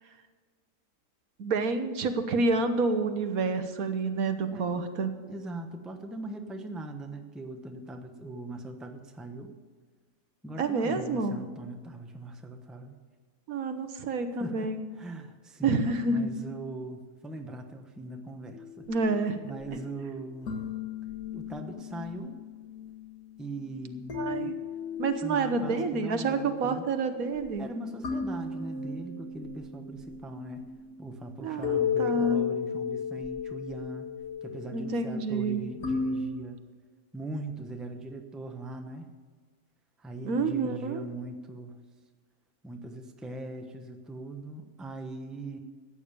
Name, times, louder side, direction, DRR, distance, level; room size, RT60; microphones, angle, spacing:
voice 1, 1.4-5.1 10.6-11.4 13.5-14.8 15.6-16.3 18.9-19.4 24.2-24.5 25.0-27.6 31.4-32.4 34.7-35.6 40.2-41.0, right 3 dB, 75° right, 8 dB, 1.4 m, -28 dB
voice 2, 4.5-9.5 10.4-12.9 14.4-18.9 19.4-20.7 21.3-22.4 23.4-24.5 25.1-26.9 27.6-30.7 31.0-36.6 37.1-39.1 40.0-41.8 42.6-45.6, right 1 dB, ahead, 4 dB, 0.8 m, -40 dB
sound 1, 18.5-36.2, left 6 dB, 85° left, 2.4 m, -36 dB
14.0 x 9.0 x 6.8 m, 1.5 s
omnidirectional pair, 1.5 m